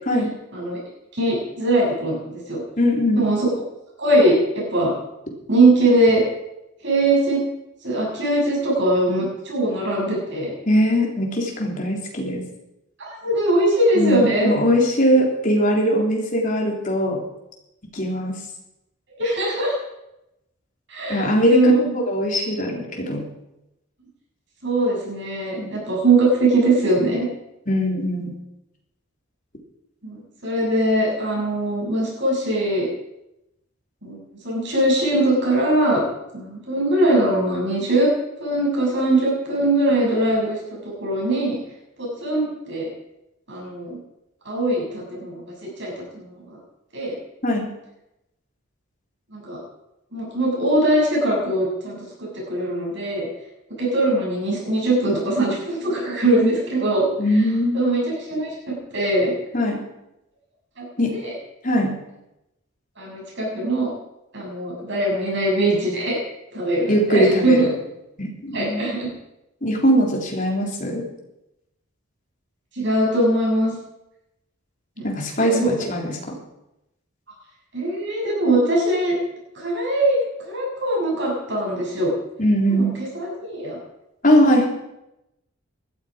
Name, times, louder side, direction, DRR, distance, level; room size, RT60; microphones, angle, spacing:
voice 1, 1.1-2.2 2.5-2.6 3.1-3.5 4.0-4.3 4.7-4.9 5.5-6.2 6.8-7.4 7.8-10.5 13.0-14.5 19.2-19.7 20.9-21.9 24.6-27.3 30.0-32.8 34.0-34.2 34.4-36.0 36.3-38.1 38.4-41.6 42.0-42.9 43.5-44.0 44.4-46.6 46.9-47.2 49.3-49.6 50.1-53.3 53.8-57.1 57.3-57.4 57.7-58.0 58.3-59.3 60.8-60.9 61.2-61.3 63.0-63.9 64.3-66.2 66.5-67.7 68.5-69.1 72.8-73.7 75.0-75.1 75.4-75.7 77.7-79.1 79.5-80.2 80.5-82.1 82.7-82.9 83.1-83.8, right 1 dB, 55° right, -3 dB, 7.9 m, -21 dB
voice 2, 2.8-3.3 10.7-12.4 13.9-17.2 17.9-18.4 21.1-23.2 25.6-25.7 27.7-28.3 47.4-47.7 57.2-57.8 59.5-59.8 61.0-61.1 61.6-61.9 66.9-67.7 68.2-68.9 69.6-71.1 75.0-76.4 82.4-82.9 84.2-84.7, equal, 35° left, -1 dB, 3.5 m, -20 dB
19.5 x 13.0 x 5.1 m, 0.88 s
head